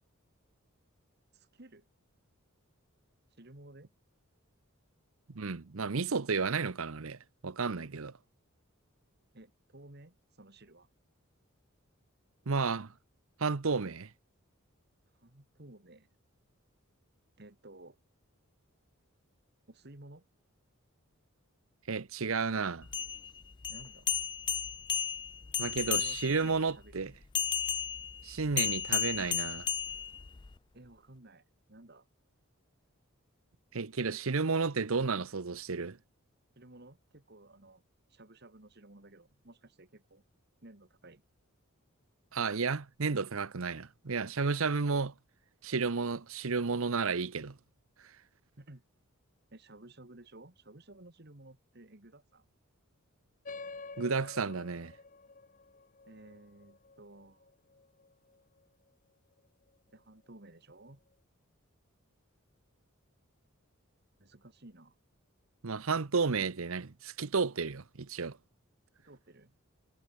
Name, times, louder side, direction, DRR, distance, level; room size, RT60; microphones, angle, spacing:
voice 1, 1.3-1.9 3.4-3.9 9.3-10.9 15.2-16.1 17.4-18.0 19.7-20.3 23.7-24.1 25.9-27.1 30.7-32.1 36.6-37.8 38.1-40.2 40.6-41.2 48.6-48.8 49.5-52.5 56.1-57.5 59.9-61.0 64.2-65.0 69.0-69.5, right 2 dB, 50° right, 2.0 m, -54 dB
voice 2, 5.3-7.2 7.4-8.1 12.5-12.9 13.4-14.1 21.9-22.9 25.6-27.1 28.2-29.7 33.7-36.0 42.3-45.1 45.6-47.6 54.0-54.9 65.6-68.4, right 4 dB, 75° right, 0.9 m, -32 dB
sound 1, 22.8-26.5 27.3-30.5, left 8 dB, 20° left, 0.4 m, -34 dB
sound 2, 53.4-58.4, left 3 dB, 40° left, 1.0 m, -49 dB
head